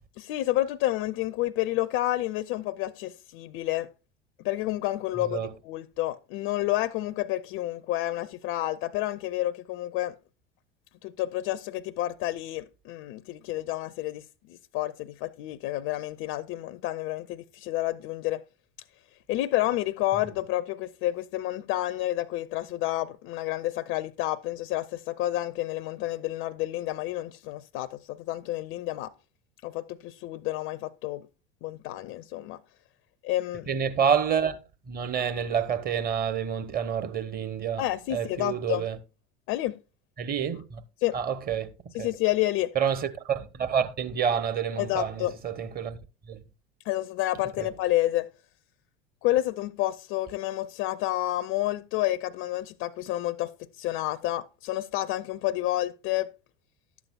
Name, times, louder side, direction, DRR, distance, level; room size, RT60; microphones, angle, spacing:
voice 1, 0.2-3.9 4.4-10.2 11.0-18.4 19.3-29.1 29.6-31.3 31.6-32.6 33.2-33.7 37.8-38.9 39.5-39.8 41.0-41.2 41.9-42.7 44.8-45.3 46.9-48.3 49.2-56.3, left 15 dB, 40° left, 0.4 m, -29 dB
voice 2, 5.2-5.5 33.7-34.6 34.9-37.8 38.1-39.0 40.2-40.8 41.1-41.7 42.0-42.1 42.7-46.0 46.3-46.4 47.6-47.7, right 7 dB, 30° right, 0.9 m, -28 dB
11.5 x 8.1 x 2.2 m
figure-of-eight pair, 70°, 31 cm